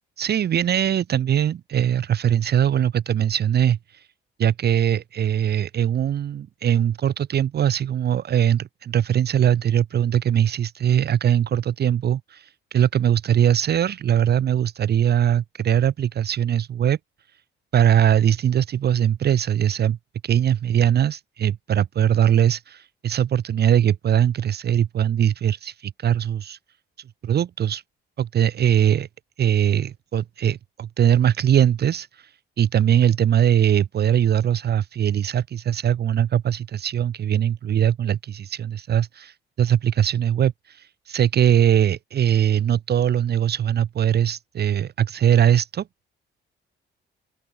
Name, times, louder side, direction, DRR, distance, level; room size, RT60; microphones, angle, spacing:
voice 1, 0.2-4.0 4.4-17.0 17.7-20.0 20.2-26.6 27.2-27.8 28.2-29.1 29.4-32.3 32.6-45.9, right 10 dB, 55° right, 0.9 m, -21 dB
open air
cardioid pair, 90°, 20 cm